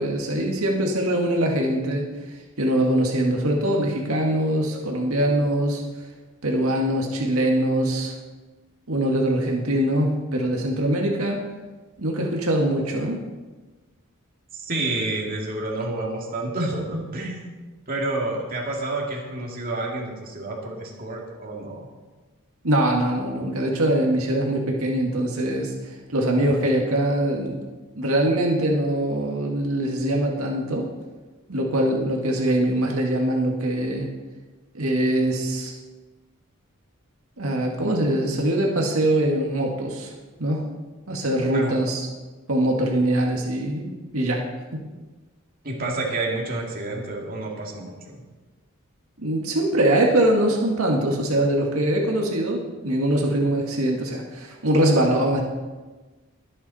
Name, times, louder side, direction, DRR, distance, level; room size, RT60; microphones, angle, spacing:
voice 1, 0.0-5.8 6.4-8.1 8.9-11.4 12.0-13.2 22.6-27.6 27.9-30.9 31.5-34.1 34.7-35.7 37.4-40.1 40.4-40.6 41.1-42.1 42.5-44.4 44.7-44.8 49.2-55.4, right 1 dB, 75° right, 0 dB, 1.9 m, -23 dB
voice 2, 14.5-17.5 17.9-21.9 41.5-41.7 45.6-48.2, right 2 dB, 40° right, -2 dB, 2.4 m, -29 dB
21.5 x 8.6 x 4.2 m, 1.3 s
head